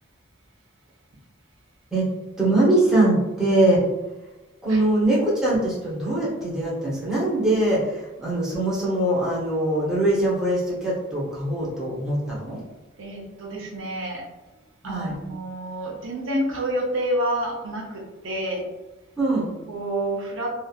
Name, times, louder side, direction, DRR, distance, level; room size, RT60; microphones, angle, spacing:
voice 1, 2.4-3.9 4.6-12.6 14.8-15.1 19.2-19.5, right 1 dB, 5° right, -8 dB, 0.8 m, -22 dB
voice 2, 13.0-14.2 14.8-18.6 19.7-20.5, right 1 dB, 80° right, -1 dB, 0.6 m, -28 dB
2.7 x 2.4 x 2.3 m, 1.1 s
head